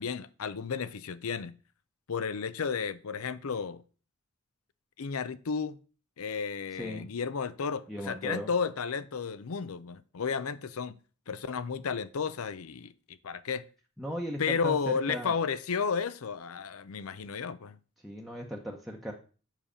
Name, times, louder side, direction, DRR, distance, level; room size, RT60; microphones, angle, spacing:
voice 1, 0.0-1.6 2.1-3.8 5.0-5.8 6.2-10.9 11.3-13.6 14.4-17.8, left 6 dB, 80° left, 0.6 m, -33 dB
voice 2, 6.8-7.1 7.9-8.5 14.0-15.3 18.0-19.1, equal, ahead, 0.8 m, -37 dB
7.5 x 5.7 x 5.0 m
head